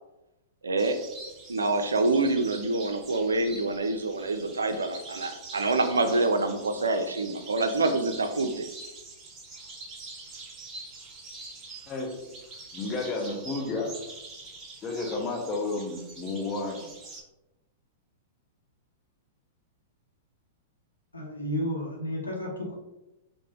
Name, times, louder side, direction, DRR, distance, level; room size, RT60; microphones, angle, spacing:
voice 1, 0.6-1.0 1.5-8.7, right 2 dB, 80° right, 8 dB, 0.3 m, -26 dB
sound 1, 0.8-17.2, right 3 dB, 25° right, 0.8 m, -45 dB
voice 2, 11.9-12.2 12.7-14.0 14.8-16.8, left 3 dB, 25° left, 1 dB, 0.7 m, -31 dB
voice 3, 21.1-22.7, equal, 85° left, -2 dB, 0.8 m, -32 dB
3.3 x 2.0 x 3.5 m, 0.99 s
figure-of-eight pair, 100°, 0 cm